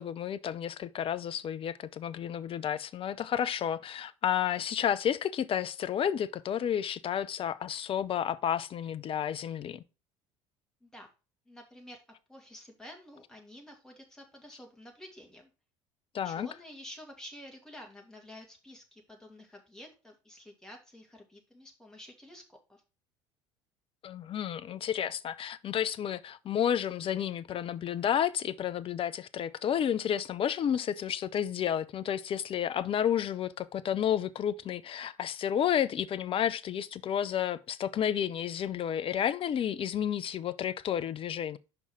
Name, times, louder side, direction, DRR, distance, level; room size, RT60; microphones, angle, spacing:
voice 1, 0.0-9.8 16.1-16.5 24.0-41.6, left 9 dB, 35° left, 0.5 m, -31 dB
voice 2, 11.5-12.0 12.3-15.5 16.2-22.8, left 1 dB, 5° left, 2.3 m, -50 dB
5.9 x 5.4 x 4.6 m
figure-of-eight pair, 65°, 16 cm